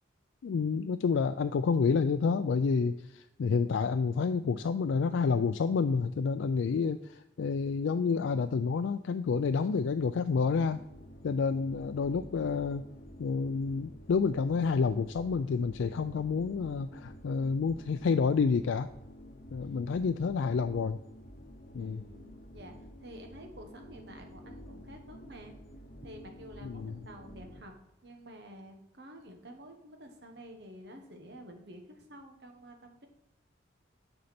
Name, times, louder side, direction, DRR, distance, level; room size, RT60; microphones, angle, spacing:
voice 1, 0.4-10.8 11.2-12.8 13.2-18.9 19.5-21.0 21.7-22.0 26.6-27.0, left 5 dB, 85° left, 9 dB, 0.4 m, -29 dB
sound 1, 9.6-27.6, equal, 55° left, 1.1 m, -50 dB
voice 2, 19.6-20.0 21.8-25.5 26.0-27.7 28.0-33.1, equal, 60° right, 4 dB, 1.4 m, -50 dB
9.4 x 5.4 x 4.3 m, 0.88 s
head